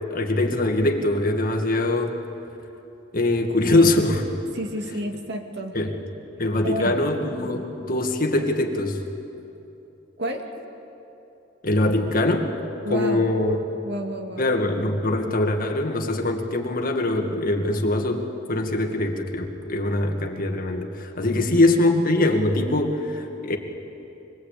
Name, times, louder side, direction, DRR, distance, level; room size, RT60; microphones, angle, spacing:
voice 1, 0.1-2.2 3.1-4.2 5.7-5.9 6.4-9.0 11.6-12.5 12.9-13.6 14.4-23.6, left 2 dB, 45° left, 3 dB, 2.0 m, -22 dB
voice 2, 4.5-5.8 6.6-7.0 10.2-10.5 12.8-13.3 13.8-14.5 21.2-21.5, equal, 60° right, 3 dB, 2.2 m, -30 dB
24.5 x 21.0 x 8.5 m, 3.0 s
head